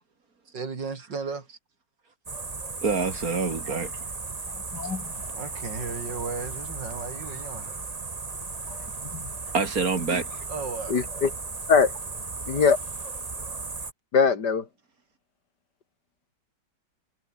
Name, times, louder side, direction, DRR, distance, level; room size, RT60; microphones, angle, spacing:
voice 1, 0.5-1.5 5.3-7.8 10.5-11.0, right 4 dB, 75° right, 3.8 m, -35 dB
sound 1, 2.3-13.9, right 3 dB, 25° right, 1.3 m, -36 dB
voice 2, 2.8-4.1 9.5-10.4, right 4 dB, 50° right, 3.4 m, -27 dB
voice 3, 4.7-5.3 8.7-8.9 9.1-9.2 10.9-11.3 11.7-11.9 12.5-12.8 14.1-14.7, left 5 dB, 65° left, 3.1 m, -22 dB
omnidirectional pair, 2.0 m